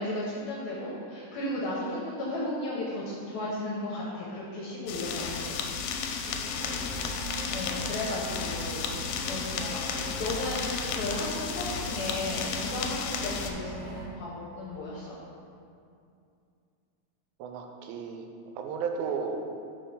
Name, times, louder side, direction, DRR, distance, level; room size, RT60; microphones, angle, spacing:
voice 1, 0.0-5.7 6.1-6.4 7.5-15.2, left 1 dB, 70° left, -5 dB, 1.7 m, -35 dB
sound 1, 4.9-13.5, left 6 dB, 85° left, 2.3 m, -33 dB
voice 2, 6.3-7.1 17.4-18.3 18.6-19.4, right 6 dB, 90° right, 4 dB, 2.4 m, -35 dB
sound 2, 6.5-14.0, right 1 dB, 60° right, 1.7 m, -40 dB
5.7 x 4.5 x 5.4 m, 2.5 s
omnidirectional pair, 4.1 m